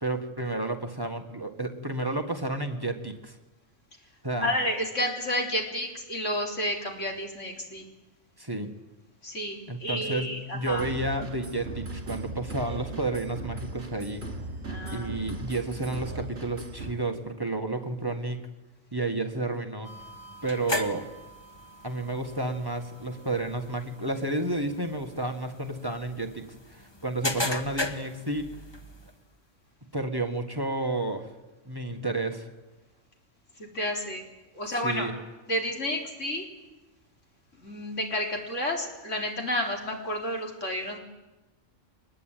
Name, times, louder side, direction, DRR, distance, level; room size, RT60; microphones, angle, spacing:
voice 1, 0.0-3.4 4.2-4.5 8.4-8.7 9.7-14.2 14.9-18.4 18.9-19.9 20.4-21.1 21.8-28.5 29.9-31.3 31.6-32.5 34.8-35.1, right 2 dB, 20° right, 6 dB, 1.7 m, -31 dB
voice 2, 4.4-7.8 9.2-10.8 14.7-15.1 33.6-34.2 34.5-35.1 35.5-36.4 37.6-41.0, left 1 dB, 70° left, 1 dB, 4.1 m, -30 dB
sound 1, 10.6-16.9, right 2 dB, 55° right, 3.1 m, -38 dB
sound 2, 19.8-29.2, left 1 dB, 20° left, 1.4 m, -37 dB
23.5 x 20.5 x 9.2 m, 1.1 s
omnidirectional pair, 1.3 m